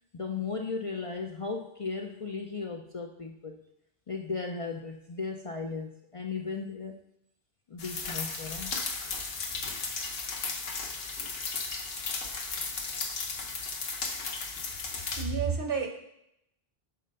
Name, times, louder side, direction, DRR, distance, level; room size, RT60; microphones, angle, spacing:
voice 1, 0.1-3.6 4.1-7.0 7.7-8.7, left 4 dB, 45° left, 2 dB, 0.5 m, -36 dB
sound 1, 7.8-15.2, left 4 dB, 75° left, 1.1 m, -35 dB
voice 2, 15.1-15.9, right 5 dB, 60° right, 2 dB, 1.2 m, -29 dB
5.6 x 4.2 x 5.4 m, 0.77 s
omnidirectional pair, 1.0 m